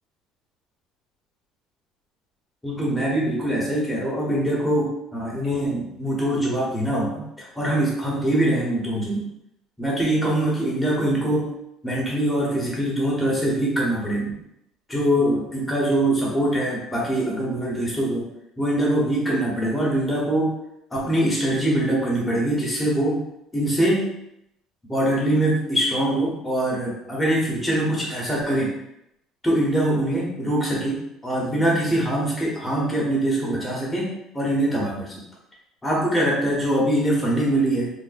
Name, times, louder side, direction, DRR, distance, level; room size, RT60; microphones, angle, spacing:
voice 1, 2.6-7.2 7.5-9.2 9.8-11.5 11.8-14.3 14.9-18.2 18.6-20.5 20.9-23.2 23.5-24.1 24.9-28.7 29.4-35.1 35.8-37.9, right 1 dB, 10° left, -5 dB, 1.2 m, -23 dB
3.5 x 2.2 x 4.0 m, 0.80 s
cardioid pair, 150°, 0 cm